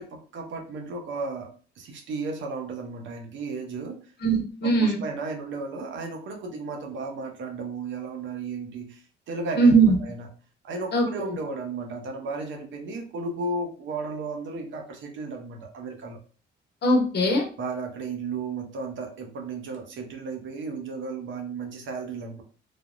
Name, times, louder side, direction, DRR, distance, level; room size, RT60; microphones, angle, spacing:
voice 1, 0.0-4.0 4.6-9.7 10.0-10.3 10.6-16.2 17.6-22.4, right 3 dB, 70° right, 3 dB, 0.8 m, -34 dB
voice 2, 4.2-5.0 9.5-10.0 10.9-11.1 16.8-17.5, right 2 dB, 55° left, 3 dB, 0.9 m, -20 dB
3.3 x 2.1 x 2.5 m, 0.39 s
cardioid pair, 90°, 20 cm